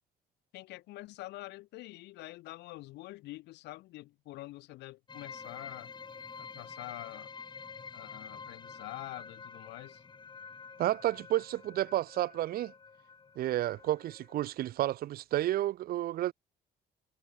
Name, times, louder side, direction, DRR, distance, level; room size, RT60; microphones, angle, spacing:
voice 1, 0.5-5.9 6.4-7.3 7.9-10.0, left 18 dB, 90° left, 6.2 m, -46 dB
sound 1, 5.1-14.4, left 5 dB, 25° left, 4.3 m, -48 dB
voice 2, 10.8-12.7 13.4-16.3, right 14 dB, 60° right, 0.9 m, -31 dB
cardioid pair, 130°, 17 cm